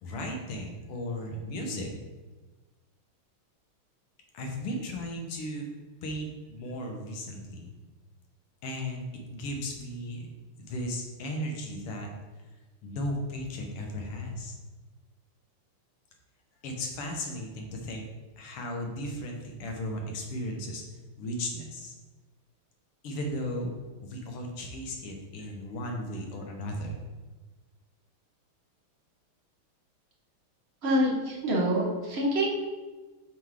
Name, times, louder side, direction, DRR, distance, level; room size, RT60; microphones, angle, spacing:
voice 1, 0.0-1.9 4.3-5.7 6.0-7.7 8.6-9.0 9.3-10.3 10.6-12.1 12.8-14.5 16.6-18.0 18.4-20.8 21.2-21.9 23.0-27.0, left 1 dB, 85° left, 2 dB, 1.9 m, -35 dB
voice 2, 30.8-32.5, equal, 45° right, -3 dB, 0.8 m, -26 dB
7.2 x 4.0 x 3.6 m, 1.3 s
omnidirectional pair, 2.4 m